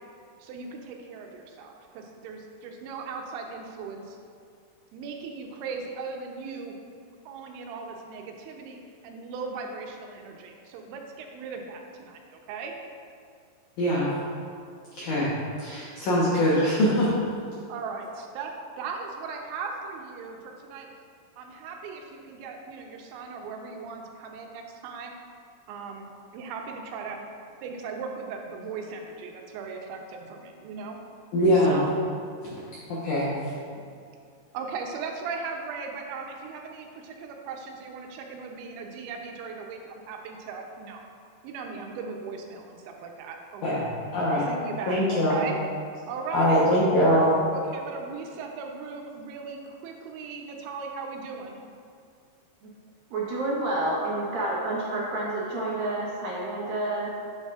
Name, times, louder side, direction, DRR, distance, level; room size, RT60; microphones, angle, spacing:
voice 1, 0.4-4.2 4.9-6.8 7.3-12.7 17.7-18.5 18.8-20.9 21.4-25.1 25.7-27.3 27.6-31.0 31.6-31.9 34.5-41.0 41.4-43.7 44.3-45.6 46.1-46.6 47.5-51.6, right 5 dB, 90° right, 2 dB, 3.1 m, -38 dB
voice 2, 13.8-14.1 15.0-15.3 15.6-17.1 31.3-31.8 32.9-33.3 43.6-43.8 44.1-44.4 44.9-45.4 46.3-47.3, equal, 80° left, -7 dB, 1.8 m, -22 dB
voice 3, 53.1-57.1, right 2 dB, 70° right, -5 dB, 2.3 m, -29 dB
8.9 x 8.0 x 2.4 m, 2.3 s
omnidirectional pair, 5.1 m